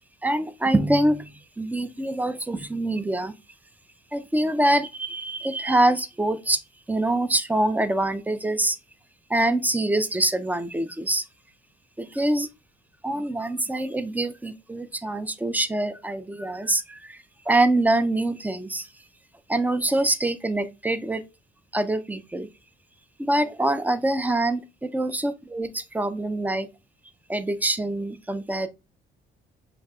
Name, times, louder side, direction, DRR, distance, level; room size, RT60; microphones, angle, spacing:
voice 1, 0.2-3.3 4.1-6.6 6.9-8.8 9.3-11.2 12.0-12.5 13.0-18.9 19.5-21.2 21.7-22.5 23.2-26.7 27.3-28.7, right 1 dB, 10° right, 0.4 m, -25 dB
5.0 x 3.2 x 2.3 m
cardioid pair, 90°, 20 cm